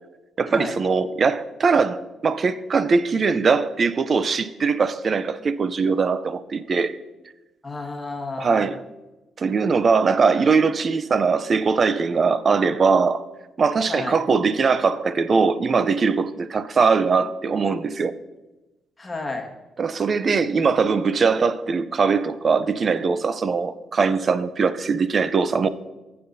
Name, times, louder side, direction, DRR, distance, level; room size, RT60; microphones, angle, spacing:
voice 1, 0.4-7.0 8.4-8.8 9.4-13.2 13.6-18.1 19.8-25.7, right 5 dB, 40° right, 0.5 m, -21 dB
voice 2, 7.6-8.6 13.9-14.1 19.0-19.5, left 3 dB, 20° left, 1.7 m, -31 dB
15.5 x 8.7 x 2.7 m
cardioid pair, 90°, 0 cm